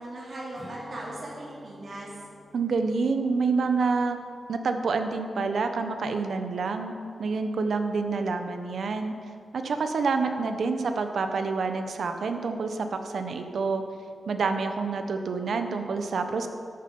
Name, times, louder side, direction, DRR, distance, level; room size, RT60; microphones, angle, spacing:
voice 1, 0.0-2.1, right 1 dB, 50° right, -6 dB, 2.7 m, -38 dB
Strum, 0.6-5.3 5.6-5.9, equal, 20° right, 3.5 m, -50 dB
voice 2, 2.5-4.2 4.5-6.9 7.2-9.1 9.5-13.8 14.3-16.5, right 4 dB, 65° right, 7 dB, 0.9 m, -27 dB
12.5 x 8.9 x 5.4 m, 2.3 s
wide cardioid pair, 140°, 0 cm